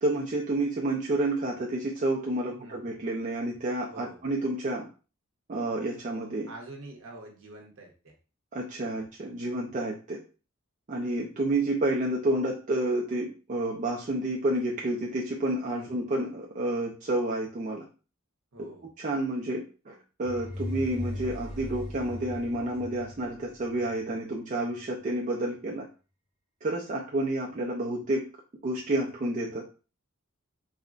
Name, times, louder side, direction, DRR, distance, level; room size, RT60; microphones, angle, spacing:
voice 1, 0.0-4.9 5.5-6.5 8.5-10.2 10.9-17.8 19.0-25.9 26.6-28.2 28.6-29.6, right 1 dB, 35° right, -2 dB, 0.4 m, -30 dB
voice 2, 2.5-2.9 3.9-4.2 6.5-8.1 15.7-16.0 18.5-18.9, right 2 dB, 65° right, 0 dB, 0.9 m, -46 dB
sound 1, 20.2-24.1, left 1 dB, 5° right, 0.9 m, -38 dB
3.6 x 2.1 x 2.4 m, 0.34 s
head